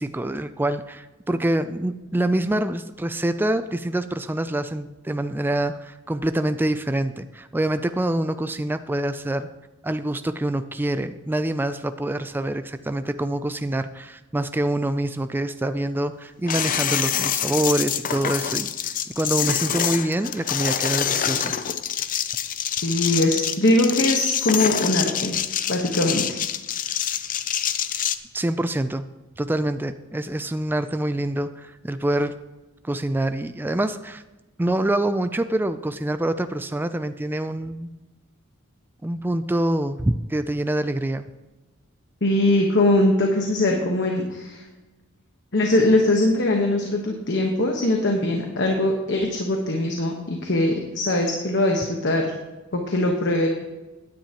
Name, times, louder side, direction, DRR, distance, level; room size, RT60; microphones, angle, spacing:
voice 1, 0.0-9.5 9.8-21.5 28.3-29.0 29.4-32.3 32.8-34.2 34.6-37.9 39.0-41.3, right 1 dB, 10° right, 10 dB, 0.3 m, -25 dB
sound 1, 16.5-28.2, left 9 dB, 40° left, 0.5 m, -26 dB
voice 2, 22.8-25.4 25.7-26.4 42.2-44.6 45.5-52.3 52.7-53.5, left 1 dB, 55° left, 2 dB, 1.2 m, -21 dB
16.5 x 10.0 x 3.0 m, 1.1 s
head